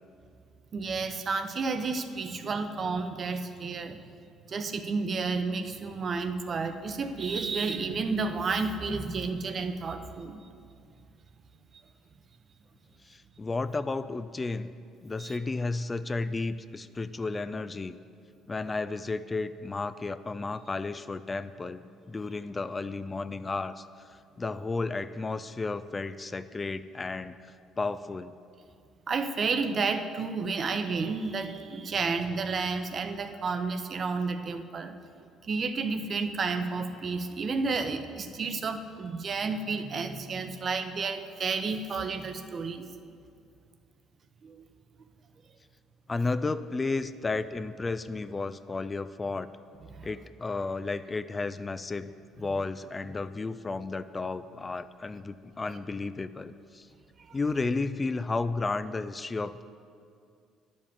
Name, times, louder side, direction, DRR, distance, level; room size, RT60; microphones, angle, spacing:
voice 1, 0.7-4.0 4.5-10.4 15.2-15.4 29.1-34.9 35.4-42.9 44.4-44.6 49.9-50.1 57.2-57.4, right 4 dB, 45° right, 8 dB, 0.7 m, -31 dB
voice 2, 13.0-14.7 15.0-18.0 18.5-28.3 46.1-49.5 50.0-56.9 57.3-59.6, left 3 dB, 25° left, 13 dB, 0.3 m, -33 dB
10.5 x 5.3 x 7.0 m, 2.3 s
supercardioid pair, 65°, 0 cm